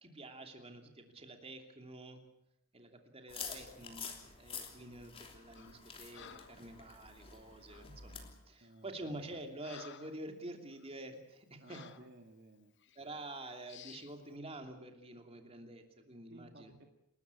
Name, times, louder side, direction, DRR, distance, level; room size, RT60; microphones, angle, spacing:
voice 1, 0.0-2.2 2.7-11.8 12.9-16.7, right 1 dB, 25° right, 5 dB, 2.9 m, -48 dB
sound 1, 3.3-8.3, left 5 dB, 25° left, 3.2 m, -48 dB
Breathing, 5.5-5.8 6.1-6.6 7.7-8.0 8.6-8.8 9.2-10.3 10.7-10.9 11.7-12.1 12.8-13.0 13.7-14.2, left 8 dB, 55° left, 0.9 m, -55 dB
voice 2, 8.6-8.9 11.6-12.7 16.3-16.8, right 2 dB, 50° right, 4 dB, 1.8 m, -56 dB
29.0 x 13.5 x 8.5 m, 0.83 s
head